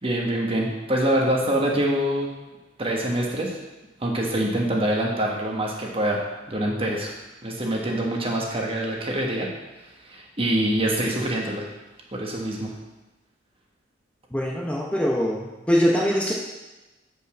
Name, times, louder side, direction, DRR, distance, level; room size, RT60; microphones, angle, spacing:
voice 1, 0.0-2.3 2.8-3.6 4.0-6.2 6.5-7.1 7.4-9.5 10.0-11.6 12.1-12.7, right 1 dB, 30° right, -1 dB, 1.5 m, -25 dB
voice 2, 14.3-16.3, equal, 5° left, -3 dB, 0.9 m, -23 dB
6.9 x 5.5 x 7.1 m, 1.1 s
head